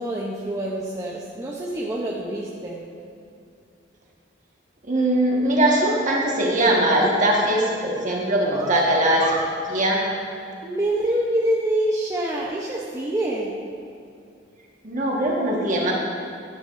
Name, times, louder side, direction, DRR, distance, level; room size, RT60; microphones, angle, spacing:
voice 1, 0.0-2.8 8.5-8.9 10.6-13.5, right 1 dB, 15° right, -4 dB, 0.6 m, -26 dB
voice 2, 4.9-9.3 9.7-10.0 14.8-15.9, right 1 dB, 45° right, -2 dB, 1.4 m, -21 dB
10.5 x 8.8 x 2.5 m, 2.5 s
head